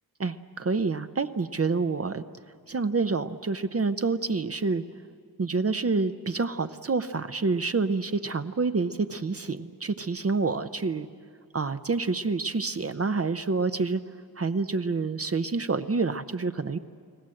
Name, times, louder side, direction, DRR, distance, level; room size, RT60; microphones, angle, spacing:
voice 1, 0.2-2.2 2.7-4.8 5.4-11.1 11.5-14.0 14.4-16.8, right 4 dB, 40° right, 10 dB, 0.7 m, -27 dB
30.0 x 19.5 x 7.7 m, 2.3 s
wide cardioid pair, 90°, 37 cm